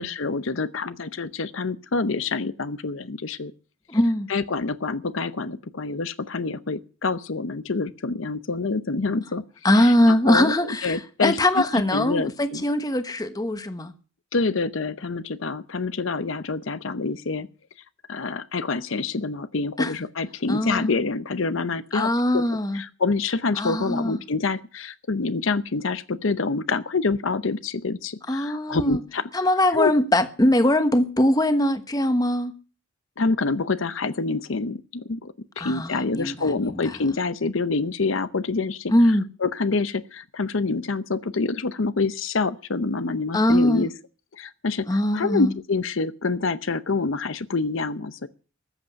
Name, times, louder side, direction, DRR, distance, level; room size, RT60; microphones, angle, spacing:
voice 1, 0.0-3.5 4.3-9.4 9.7-9.9 10.3-11.6 11.9-12.6 14.3-17.5 18.1-22.1 22.3-22.4 22.7-29.3 29.7-29.9 33.2-38.9 39.4-43.9 44.4-48.3, left 3 dB, 75° left, 0.8 m, -27 dB
voice 2, 3.9-4.3 9.6-13.9 19.8-19.9 20.5-20.9 21.9-22.8 23.6-24.2 28.3-29.0 29.3-32.5 35.6-37.0 38.9-39.3 43.3-43.9 44.9-45.5, left 1 dB, 20° left, 1.2 m, -21 dB
14.0 x 7.9 x 9.2 m
head